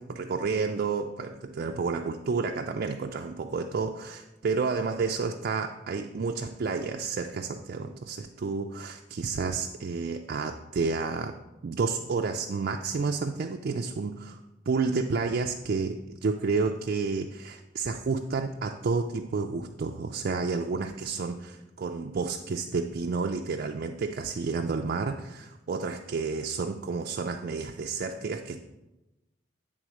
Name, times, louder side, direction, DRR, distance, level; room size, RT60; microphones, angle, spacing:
voice 1, 0.0-14.4 14.7-28.6, right 4 dB, 50° right, 4 dB, 0.4 m, -30 dB
9.1 x 3.7 x 6.2 m, 1.0 s
head